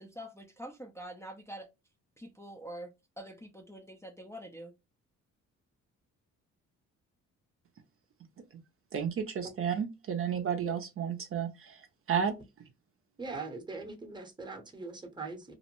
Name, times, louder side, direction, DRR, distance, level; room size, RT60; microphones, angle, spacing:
voice 1, 0.0-1.7 2.2-4.7, right 1 dB, 10° left, 0.4 m, -45 dB
voice 2, 8.9-12.3, right 7 dB, 45° right, 0.5 m, -32 dB
voice 3, 13.2-15.5, right 3 dB, 15° right, 0.8 m, -41 dB
2.5 x 2.0 x 2.9 m
cardioid pair, 90°, 30 cm